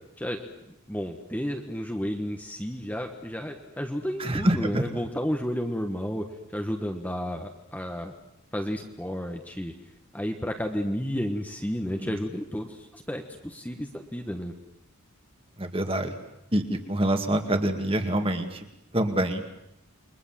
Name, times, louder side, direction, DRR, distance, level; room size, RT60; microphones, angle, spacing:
voice 1, 0.7-6.3 6.5-8.1 8.5-9.7 10.1-14.5, equal, 5° left, 3 dB, 1.4 m, -32 dB
voice 2, 4.2-4.8 12.0-12.1 15.6-16.1 16.5-18.6 18.9-19.4, right 1 dB, 25° right, 6 dB, 2.2 m, -26 dB
29.5 x 23.0 x 7.6 m, 0.82 s
head